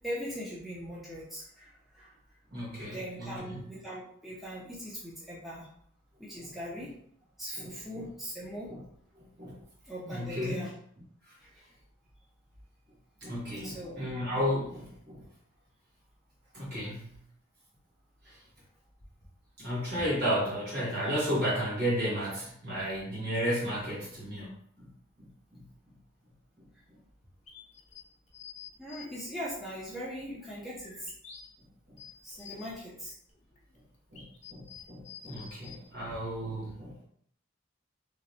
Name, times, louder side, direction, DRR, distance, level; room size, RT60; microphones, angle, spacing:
voice 1, 0.0-2.1 2.8-5.7 6.2-6.9 7.4-8.7 9.8-10.7 11.4-11.7 13.6-14.0 28.8-31.1 32.2-33.1, equal, ahead, -8 dB, 0.7 m, -40 dB
voice 2, 2.5-3.6 6.4-6.5 7.6-8.1 8.7-8.8 9.2-9.6 10.1-10.7 11.3-11.4 13.2-15.3 16.5-17.2 18.3-18.4 19.6-24.5 24.8-24.9 25.2-25.6 31.9-32.0 34.1-37.0, equal, 50° right, -7 dB, 1.4 m, -33 dB
sound 1, 27.5-29.0 29.5-29.6 30.3-31.4 31.8-32.7 33.3-35.7, left 8 dB, 35° left, 0.7 m, -49 dB
3.2 x 3.1 x 2.7 m, 0.65 s
head